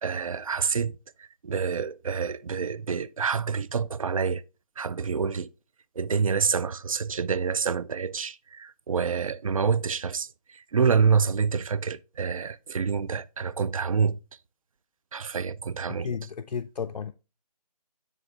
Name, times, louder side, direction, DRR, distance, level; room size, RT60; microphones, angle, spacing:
voice 1, 0.0-0.9 1.2-4.4 4.8-5.5 6.0-10.3 10.5-14.2 15.1-16.1, right 6 dB, 60° right, 0.4 m, -27 dB
voice 2, 16.0-17.1, left 6 dB, 85° left, 0.4 m, -33 dB
9.1 x 3.5 x 3.1 m
figure-of-eight pair, 165°, 20 cm